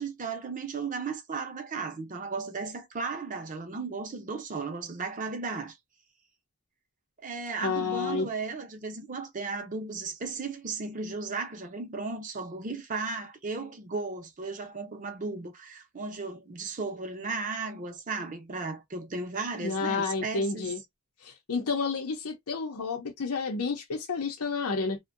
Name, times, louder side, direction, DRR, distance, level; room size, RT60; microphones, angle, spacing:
voice 1, 0.0-5.8 7.2-20.7, right 4 dB, 35° right, 0.6 m, -35 dB
voice 2, 7.6-8.3 19.6-20.8 21.2-25.0, left 4 dB, 90° left, 0.6 m, -30 dB
2.6 x 2.1 x 2.5 m
head